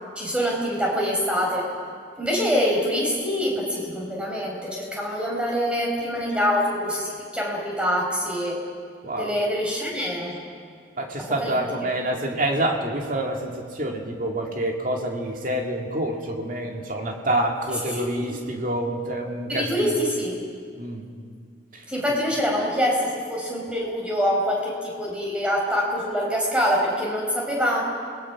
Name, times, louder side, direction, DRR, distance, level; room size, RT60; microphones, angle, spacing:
voice 1, 0.1-1.7 2.2-8.6 9.2-10.4 11.4-11.6 17.9-18.0 19.5-20.4 21.9-27.8, equal, 5° right, -2 dB, 4.7 m, -25 dB
voice 2, 9.0-9.3 11.0-19.9 20.8-21.1 21.7-21.8, right 1 dB, 45° right, 2 dB, 2.4 m, -27 dB
29.5 x 20.0 x 6.0 m, 2.1 s
head